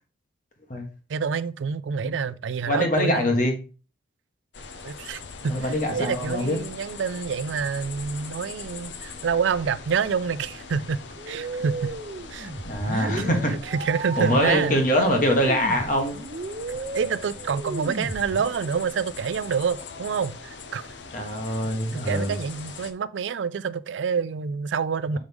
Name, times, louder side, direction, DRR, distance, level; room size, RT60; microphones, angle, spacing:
voice 1, 1.1-3.3 4.8-11.0 11.3-12.0 12.3-12.5 12.9-14.8 16.7-20.9 21.5-21.6 21.9-25.2, right 6 dB, 85° right, 0.4 m, -27 dB
voice 2, 2.7-3.5 5.5-6.6 12.6-13.5 14.2-16.2 21.1-22.3, equal, 45° left, 1.3 m, -23 dB
sound 1, 4.5-22.9, left 4 dB, 80° left, 0.7 m, -41 dB
sound 2, 11.2-18.8, right 2 dB, 45° right, 0.6 m, -34 dB
6.4 x 4.7 x 3.5 m
head